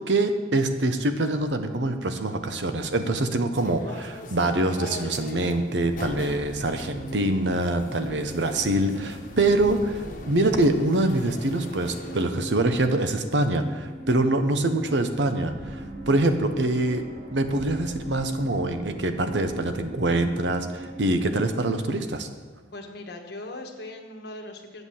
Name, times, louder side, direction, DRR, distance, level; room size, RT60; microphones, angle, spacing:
voice 1, 0.0-17.0 17.3-22.3, right 2 dB, 85° right, 8 dB, 0.9 m, -24 dB
sound 1, 3.5-12.3, left 2 dB, 50° left, 1.1 m, -42 dB
sound 2, 5.9-21.8, right 1 dB, 60° right, 1.4 m, -40 dB
voice 2, 22.7-24.8, left 2 dB, 65° left, 3 dB, 1.3 m, -39 dB
8.2 x 8.0 x 7.2 m, 1.5 s
head